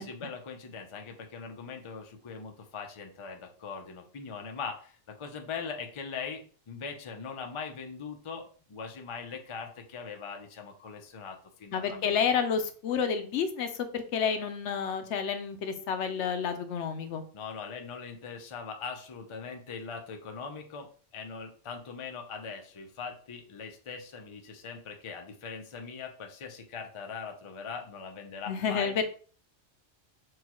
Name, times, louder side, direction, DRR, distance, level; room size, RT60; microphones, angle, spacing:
voice 1, 0.0-12.2 17.3-29.0, left 5 dB, 40° left, 4 dB, 0.5 m, -41 dB
voice 2, 11.7-17.2 28.5-29.0, left 7 dB, 75° left, 8 dB, 0.9 m, -30 dB
6.2 x 2.2 x 2.9 m, 0.43 s
omnidirectional pair, 1.2 m